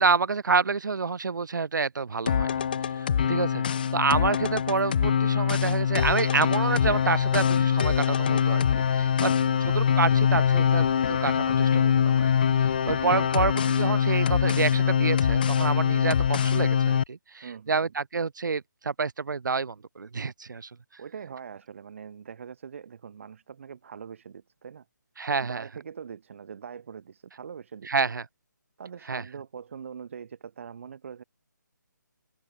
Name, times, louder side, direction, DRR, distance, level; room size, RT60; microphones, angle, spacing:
voice 1, 0.0-2.5 2.9-9.3 9.6-12.3 12.6-20.7 25.2-25.6 27.9-28.3 29.1-29.2, right 5 dB, 70° right, 0.8 m, -28 dB
sound 1, 2.3-17.0, left 8 dB, 30° left, 0.5 m, -23 dB
sound 2, 6.0-12.7, right 5 dB, 5° right, 4.8 m, -58 dB
voice 2, 9.2-9.6 13.2-13.3 17.4-17.8 21.0-24.9 25.4-27.9 28.8-31.2, right 7 dB, 40° right, 5.7 m, -42 dB
hypercardioid pair, 170°, 10 cm